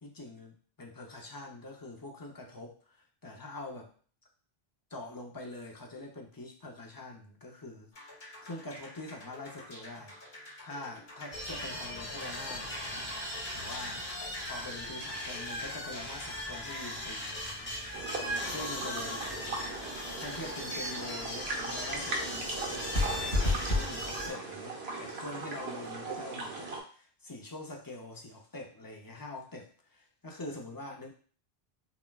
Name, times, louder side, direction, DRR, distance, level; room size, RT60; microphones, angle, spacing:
voice 1, 0.0-3.9 4.9-7.9 8.4-10.2 10.6-13.0 13.5-14.1 14.4-17.7 18.4-19.7 20.2-23.3 23.7-31.1, left 2 dB, 25° left, 0 dB, 0.5 m, -44 dB
sound 1, 7.9-23.9, left 2 dB, 70° left, 2.1 m, -40 dB
sound 2, 11.3-24.3, left 1 dB, 10° left, 1.0 m, -39 dB
sound 3, 17.9-26.8, right 3 dB, 75° right, 1.1 m, -39 dB
5.8 x 2.3 x 2.3 m, 0.42 s
omnidirectional pair, 1.1 m